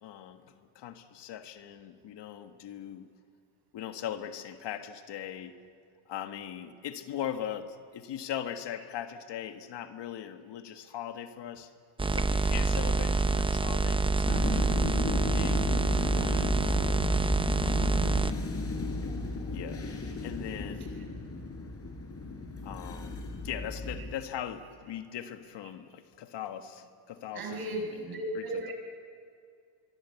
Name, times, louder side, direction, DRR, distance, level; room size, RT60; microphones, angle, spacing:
voice 1, 0.0-3.1 3.7-5.6 6.1-11.7 12.1-14.6 15.1-15.7 16.1-17.0 17.6-18.1 19.5-19.8 20.2-21.0 22.6-28.7, left 10 dB, 55° left, 8 dB, 1.6 m, -40 dB
sound 1, 12.0-18.3, right 3 dB, 10° right, 0.8 m, -27 dB
sound 2, 14.3-24.1, left 2 dB, 30° left, 4.5 m, -34 dB
voice 2, 27.3-28.7, right 1 dB, 45° right, 3 dB, 6.2 m, -35 dB
25.0 x 23.0 x 8.3 m, 2.3 s
cardioid pair, 115°, 48 cm